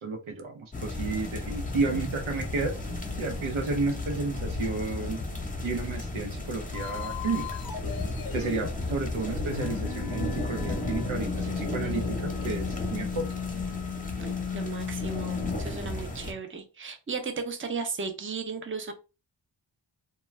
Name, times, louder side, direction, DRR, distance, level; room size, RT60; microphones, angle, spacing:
voice 1, 0.0-2.7 3.2-5.2 5.6-7.5 8.3-13.3, right 3 dB, 80° right, 4 dB, 0.8 m, -32 dB
sound 1, 0.7-16.3, left 2 dB, 15° left, 0.8 m, -34 dB
sound 2, 6.7-15.6, left 8 dB, 50° left, 0.5 m, -36 dB
voice 2, 14.2-18.9, right 5 dB, 25° right, 6 dB, 0.6 m, -35 dB
2.3 x 2.3 x 3.1 m, 0.30 s
cardioid pair, 55°, 47 cm